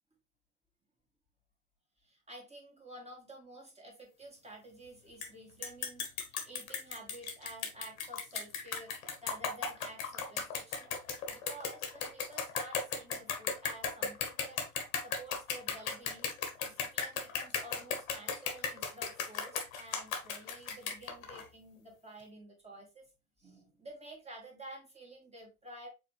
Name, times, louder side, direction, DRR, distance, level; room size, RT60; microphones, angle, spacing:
voice 1, 2.0-8.9 9.2-11.0 11.3-14.6 15.0-16.3 16.6-23.1 23.4-25.9, right 1 dB, 15° right, 2.0 m, -51 dB
sound 1, 5.2-5.3 5.6-21.5, left 6 dB, 65° left, 1.1 m, -36 dB
4.8 x 3.5 x 3.2 m
figure-of-eight pair, 65°, 43 cm